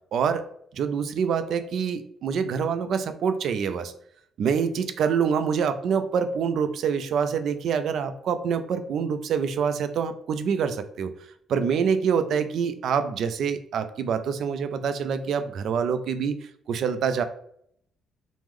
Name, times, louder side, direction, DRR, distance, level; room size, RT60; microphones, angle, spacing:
voice 1, 0.1-0.5 0.7-3.9 4.4-11.1 11.5-16.4 16.7-17.2, right 6 dB, 70° right, 9 dB, 0.3 m, -26 dB
3.1 x 2.0 x 3.5 m, 0.69 s
cardioid pair, 90°, 0 cm